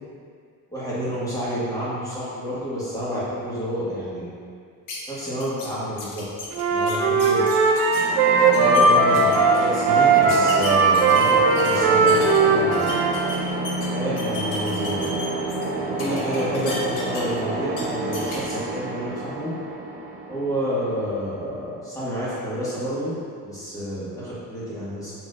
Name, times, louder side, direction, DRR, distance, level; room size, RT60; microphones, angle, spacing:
voice 1, 0.7-4.3 5.1-6.2 6.7-7.4 8.5-12.9 13.9-15.1 15.7-19.5 20.3-23.1 23.4-25.1, equal, 10° left, -10 dB, 1.4 m, -29 dB
sound 1, 4.9-5.0 5.4-5.7 6.0-8.0 8.4-8.8 9.1-9.6 10.3-12.4 12.7-13.9 14.2-15.6 16.0-17.4 17.7-17.8 18.1-18.4, left 3 dB, 60° left, 1.0 m, -35 dB
Wind instrument woodwind instrument, 6.5-13.2, right 4 dB, 90° right, 0.6 m, -18 dB
sound 2, 7.9-21.6, right 2 dB, 25° right, 0.4 m, -29 dB
6.3 x 2.9 x 2.5 m, 2.2 s
cardioid pair, 135°, 35 cm